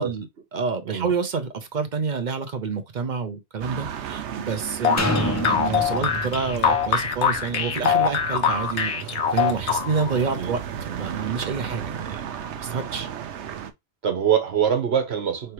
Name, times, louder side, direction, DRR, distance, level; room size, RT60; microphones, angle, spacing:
voice 1, 0.0-12.2 12.6-13.1, right 5 dB, 50° right, 0.8 m, -28 dB
sound 1, 3.6-13.7, right 9 dB, 85° right, 0.9 m, -35 dB
sound 2, 4.8-10.2, left 7 dB, 80° left, 1.1 m, -23 dB
sound 3, 5.0-8.8 9.3-9.4, left 2 dB, 20° left, 0.4 m, -30 dB
voice 2, 14.0-15.5, right 8 dB, 65° right, 1.3 m, -23 dB
4.6 x 3.3 x 2.9 m
omnidirectional pair, 1.1 m